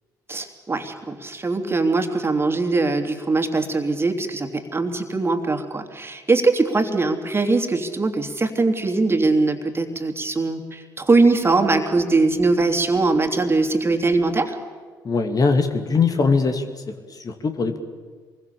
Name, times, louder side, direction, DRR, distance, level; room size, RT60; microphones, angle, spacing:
voice 1, 0.3-14.6, right 3 dB, 25° right, 5 dB, 3.0 m, -21 dB
voice 2, 15.0-16.6 17.1-17.8, left 4 dB, 40° left, 6 dB, 2.5 m, -21 dB
27.5 x 22.0 x 7.1 m, 1.5 s
figure-of-eight pair, 45°, 10 cm